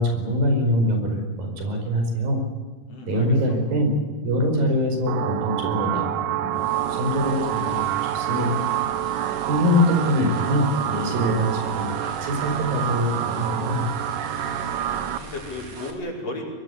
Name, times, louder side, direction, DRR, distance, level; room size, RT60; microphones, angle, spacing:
voice 1, 0.0-2.4 3.1-3.9 4.2-8.6 9.5-13.8, left 1 dB, 85° right, 4 dB, 6.7 m, -24 dB
voice 2, 2.9-3.6 14.8-16.4, left 2 dB, 45° left, -1 dB, 6.6 m, -35 dB
sound 1, 5.1-15.2, right 11 dB, 70° right, 2.4 m, -27 dB
sound 2, 6.6-15.9, right 3 dB, 50° right, 4.2 m, -40 dB
24.0 x 21.0 x 8.4 m, 1.4 s
omnidirectional pair, 4.0 m